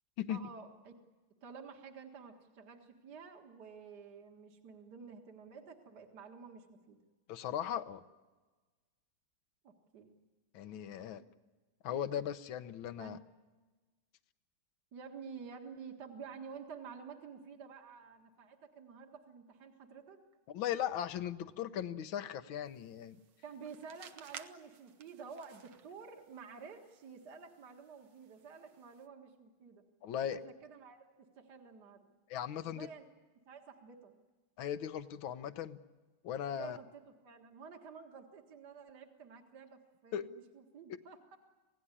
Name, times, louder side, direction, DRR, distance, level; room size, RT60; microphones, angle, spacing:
voice 1, 0.3-0.9 1.4-7.0 9.6-10.1 11.2-11.3 13.0-13.2 14.9-20.2 23.4-29.8 30.3-32.1 32.6-33.1 33.5-34.1 36.5-41.4, right 5 dB, 55° right, 3 dB, 2.3 m, -51 dB
voice 2, 7.3-8.0 10.5-11.2 11.8-13.2 20.5-23.2 30.0-30.4 32.3-32.9 34.6-35.8 36.2-36.8 40.1-40.3, left 10 dB, 75° left, 12 dB, 1.7 m, -38 dB
sound 1, 22.6-29.1, right 8 dB, 75° right, 1.9 m, -57 dB
27.5 x 17.5 x 9.9 m, 1.3 s
omnidirectional pair, 2.3 m